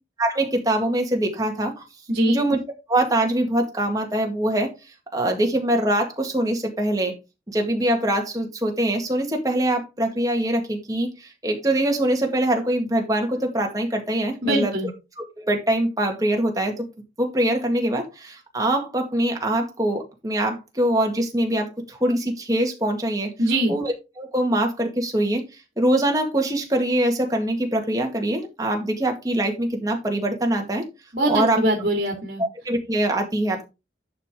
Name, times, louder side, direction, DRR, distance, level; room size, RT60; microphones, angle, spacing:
voice 1, 0.2-1.8 2.3-2.6 2.9-4.7 5.1-7.1 7.5-14.7 15.4-16.9 17.2-23.3 23.7-25.4 25.8-30.9 31.3-31.6 32.4-33.6, right 1 dB, 20° right, 2 dB, 1.9 m, -23 dB
voice 2, 2.1-2.4 14.4-14.9 23.4-23.7 31.1-32.4, right 1 dB, 50° right, 1 dB, 2.4 m, -22 dB
11.0 x 5.0 x 3.7 m, 0.26 s
head